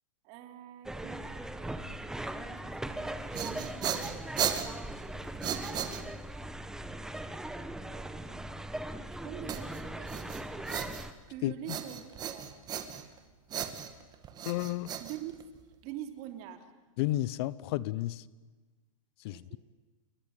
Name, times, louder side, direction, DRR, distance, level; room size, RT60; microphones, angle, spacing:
voice 1, 0.2-4.2 5.3-6.0 7.5-8.4 8.9-10.7 11.3-12.5 15.0-15.3 15.8-16.7 19.3-19.6, right 12 dB, 40° right, 7 dB, 3.2 m, -46 dB
sound 1, 0.8-11.1, right 1 dB, 5° right, 1.3 m, -39 dB
sound 2, 3.0-6.4 9.5-11.3 11.7-13.2 13.5-15.8, right 9 dB, 25° right, 2.1 m, -36 dB
voice 2, 14.5-14.9 17.0-18.2 19.2-19.6, left 16 dB, 45° left, 19 dB, 0.9 m, -32 dB
29.0 x 22.5 x 9.0 m, 1.3 s
hypercardioid pair, 140°, 17 cm